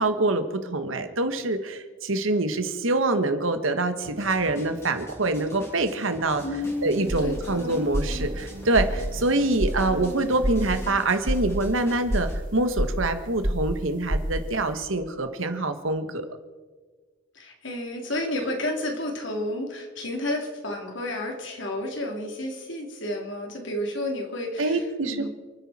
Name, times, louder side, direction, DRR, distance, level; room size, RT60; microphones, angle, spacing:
voice 1, 0.0-6.4 6.8-16.3 24.6-25.3, right 2 dB, 75° right, 8 dB, 1.4 m, -25 dB
sound 1, 4.0-12.4, equal, 15° left, 4.0 m, -45 dB
Bowed string instrument, 6.3-11.3, right 2 dB, 20° right, 4.9 m, -43 dB
voice 2, 6.4-6.9 7.2-7.8 17.3-25.3, left 1 dB, 60° left, 1 dB, 3.1 m, -31 dB
sound 2, 6.6-14.7, right 1 dB, 40° right, 1.5 m, -29 dB
29.0 x 10.0 x 4.3 m, 1.4 s
head